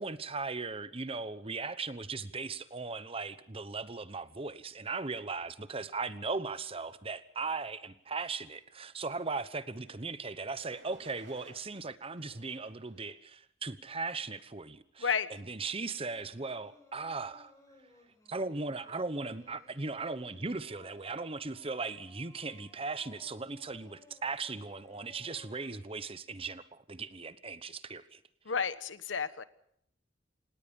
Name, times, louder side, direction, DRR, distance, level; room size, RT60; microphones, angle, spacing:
voice 1, 0.0-17.5 18.3-28.2, right 4 dB, 30° right, 1.0 m, -38 dB
sound 1, 9.6-10.0 10.5-11.6 12.1-13.2 13.8-14.1, right 3 dB, 65° right, 3.9 m, -58 dB
Singing, 15.8-25.7, left 2 dB, 15° left, 6.6 m, -61 dB
voice 2, 28.5-29.4, left 6 dB, 85° left, 1.2 m, -31 dB
27.0 x 19.0 x 5.4 m
head